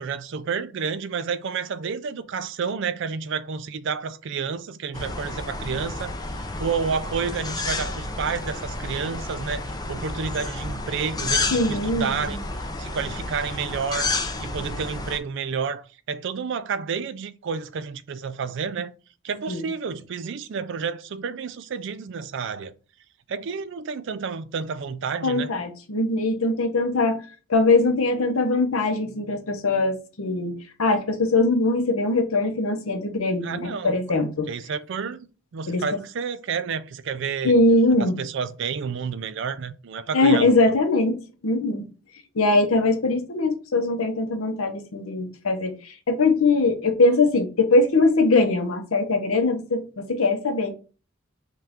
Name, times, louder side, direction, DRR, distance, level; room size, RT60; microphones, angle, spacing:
voice 1, 0.0-6.1 6.6-14.1 14.4-18.9 19.2-22.7 23.3-25.5 33.4-34.0 34.5-35.3 35.5-37.6 38.0-40.6, right 6 dB, 60° right, 0.4 m, -30 dB
sound 1, 4.9-15.2, left 3 dB, 20° left, 0.5 m, -31 dB
voice 2, 11.5-12.3 19.5-19.7 25.2-27.2 27.5-30.5 30.8-34.5 35.7-35.8 37.4-38.2 40.1-41.9 42.4-50.7, left 2 dB, 85° left, 0.8 m, -21 dB
5.5 x 2.5 x 3.5 m
head